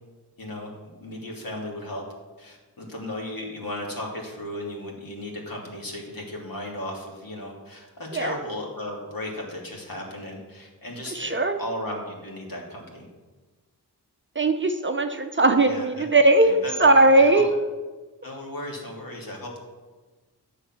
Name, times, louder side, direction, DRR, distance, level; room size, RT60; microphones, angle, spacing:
voice 1, 0.4-0.7 1.0-2.0 2.4-13.1 15.6-16.1 16.4-17.6 18.2-19.6, left 1 dB, 55° left, -1 dB, 2.8 m, -35 dB
voice 2, 11.1-11.6 14.4-17.5, right 2 dB, 30° right, 6 dB, 0.8 m, -19 dB
10.0 x 6.7 x 6.2 m, 1.3 s
wide cardioid pair, 85°, 41 cm